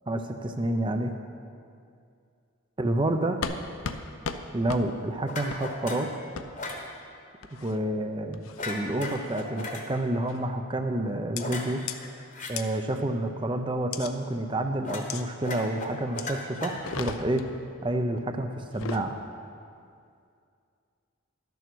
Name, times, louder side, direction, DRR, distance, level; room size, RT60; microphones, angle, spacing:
voice 1, 0.1-1.1 2.8-3.4 4.5-6.1 7.6-11.8 12.5-17.4 17.8-19.2, right 1 dB, 25° right, 6 dB, 0.5 m, -29 dB
sound 1, 3.4-3.6 3.8-4.0 4.2-4.4 4.7-4.8 5.5-5.6 6.4-6.5 7.4-7.8 8.3-8.7 9.2-9.5 10.3-10.5 11.4-11.5 11.9-12.0 12.6-12.7 13.9-14.1 15.1-15.2 16.2-16.3 16.7-17.5 18.6-19.1, left 6 dB, 80° left, 0.6 m, -36 dB
sound 2, 5.3-6.1 6.6-6.8 8.6-9.8 11.4-12.5 14.8-15.1 15.4-17.1, left 2 dB, 35° left, 1.1 m, -36 dB
12.0 x 7.0 x 6.1 m, 2.4 s
head